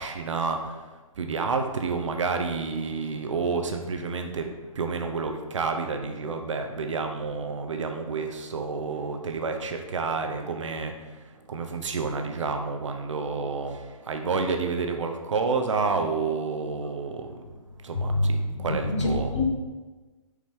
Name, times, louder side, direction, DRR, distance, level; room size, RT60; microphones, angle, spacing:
voice 1, 0.0-19.3, right 4 dB, 60° right, 5 dB, 0.9 m, -30 dB
voice 2, 18.1-19.5, left 2 dB, 55° left, 1 dB, 1.3 m, -26 dB
7.6 x 5.0 x 3.7 m, 1.3 s
hypercardioid pair, 175°, 18 cm